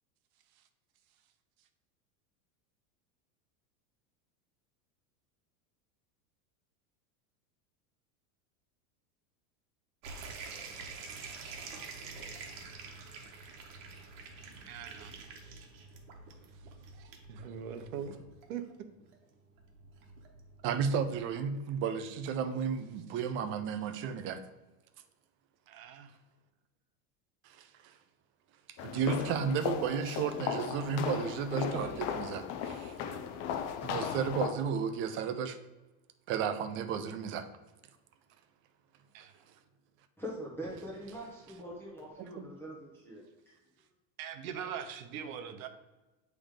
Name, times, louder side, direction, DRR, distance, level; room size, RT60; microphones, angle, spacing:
sound 1, 10.0-21.3, right 4 dB, 55° right, 1.3 m, -47 dB
voice 1, 14.7-15.3 16.9-18.2 18.5-18.6 25.7-26.1 39.1-39.3 44.2-45.7, right 8 dB, 80° right, 8 dB, 0.9 m, -41 dB
voice 2, 20.6-24.4 27.4-27.9 28.8-33.2 33.8-35.6 36.3-37.5 42.4-42.5, right 6 dB, 30° right, 9 dB, 0.4 m, -33 dB
sound 2, 28.8-34.5, left 8 dB, 40° left, 0.5 m, -36 dB
voice 3, 40.2-43.6, equal, 5° left, -5 dB, 1.2 m, -43 dB
8.6 x 3.5 x 3.7 m, 1.1 s
supercardioid pair, 145°, 42 cm